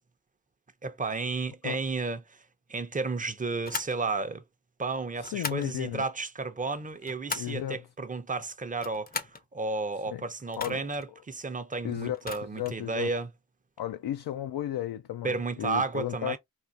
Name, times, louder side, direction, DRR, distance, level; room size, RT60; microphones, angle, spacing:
voice 1, 0.8-2.4 2.7-4.4 4.8-13.3 15.2-16.4, right 3 dB, 20° right, 0.6 m, -32 dB
sound 1, 3.6-4.0 5.2-5.7 6.8-7.6 8.7-9.4 10.5-11.1 12.1-12.8, left 4 dB, 25° left, 0.6 m, -38 dB
voice 2, 5.2-6.0 7.3-7.8 10.1-10.2 10.6-10.8 11.8-13.1 13.8-16.4, left 11 dB, 70° left, 0.5 m, -34 dB
3.6 x 2.4 x 2.7 m
cardioid pair, 55°, 40 cm